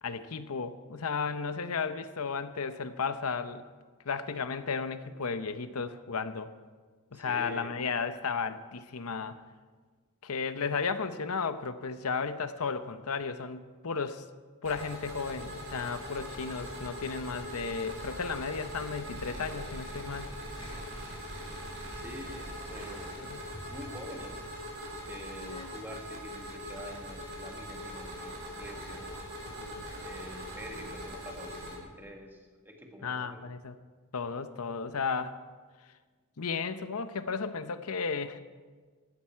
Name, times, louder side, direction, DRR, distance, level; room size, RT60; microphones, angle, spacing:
voice 1, 0.0-3.6 4.0-6.5 7.1-9.4 10.2-14.3 14.6-20.3 23.3-23.4 29.6-29.8 33.0-33.8 34.1-35.4 36.4-38.4, left 5 dB, 75° left, 11 dB, 0.8 m, -34 dB
voice 2, 7.1-7.8 21.9-23.1 23.7-24.5 25.1-29.2 30.0-33.4, equal, 10° right, 1 dB, 1.7 m, -46 dB
sound 1, 14.6-31.8, equal, 60° right, 4.8 m, -41 dB
sound 2, 20.5-25.6, left 2 dB, 25° left, 3.0 m, -52 dB
16.5 x 12.0 x 4.6 m, 1.4 s
head